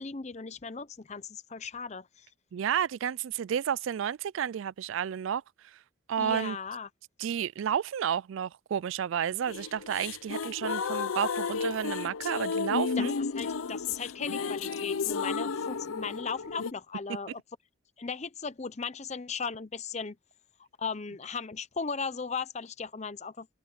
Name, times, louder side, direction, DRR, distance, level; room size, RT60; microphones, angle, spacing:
voice 1, 0.0-2.3 6.2-6.9 13.0-17.4 18.0-20.2 20.8-23.5, left 5 dB, 35° left, 0.6 m, -37 dB
voice 2, 2.5-5.4 6.1-6.6 7.2-13.2, right 8 dB, 75° right, 0.3 m, -31 dB
sound 1, 9.5-16.7, left 5 dB, 90° left, 0.6 m, -32 dB
open air
head